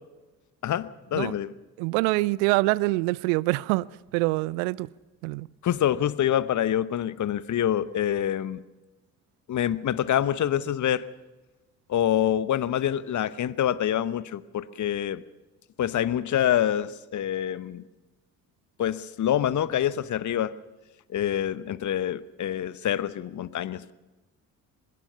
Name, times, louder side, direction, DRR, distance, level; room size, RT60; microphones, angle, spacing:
voice 1, 0.6-1.5 5.6-8.6 9.5-11.1 11.9-15.2 15.8-17.8 18.8-20.5 21.1-23.9, left 10 dB, 40° left, 1.0 m, -26 dB
voice 2, 1.8-3.9 4.1-4.9 5.2-5.5, right 22 dB, 65° right, 0.6 m, -25 dB
24.0 x 21.0 x 5.7 m
figure-of-eight pair, 45°, 44 cm